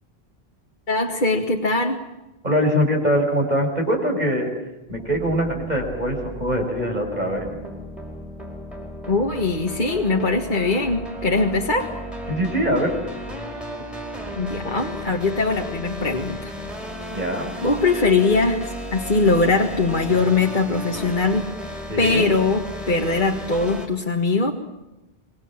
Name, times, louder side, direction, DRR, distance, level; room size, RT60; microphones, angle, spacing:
voice 1, 0.9-2.0 9.1-11.9 14.4-16.5 17.6-21.5 22.0-24.5, left 3 dB, 50° left, 1 dB, 2.1 m, -21 dB
voice 2, 2.4-4.5 4.9-7.5 12.3-12.9 14.6-14.7 17.1-17.5 21.9-22.3, equal, 45° right, 1 dB, 6.4 m, -23 dB
sound 1, 4.9-23.9, equal, ahead, 4.9 m, -34 dB
27.0 x 23.0 x 7.5 m, 0.99 s
omnidirectional pair, 1.0 m